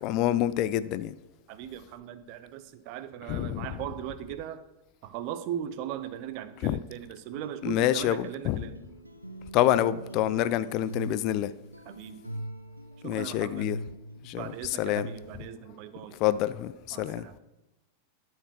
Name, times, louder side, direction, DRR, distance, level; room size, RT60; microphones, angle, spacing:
voice 1, 0.0-1.1 3.3-3.7 6.6-6.8 7.6-8.6 9.5-11.5 13.0-13.8 14.2-14.4 14.8-15.1 16.2-17.3, left 13 dB, 40° left, 16 dB, 0.3 m, -27 dB
voice 2, 1.5-4.6 5.0-8.8 11.8-12.2 13.0-13.7 14.4-16.2 16.9-17.4, right 10 dB, 45° right, 12 dB, 0.6 m, -39 dB
sound 1, 7.3-15.6, right 1 dB, 90° right, 0.6 m, -42 dB
12.0 x 4.5 x 4.7 m, 0.98 s
figure-of-eight pair, 90°, 0 cm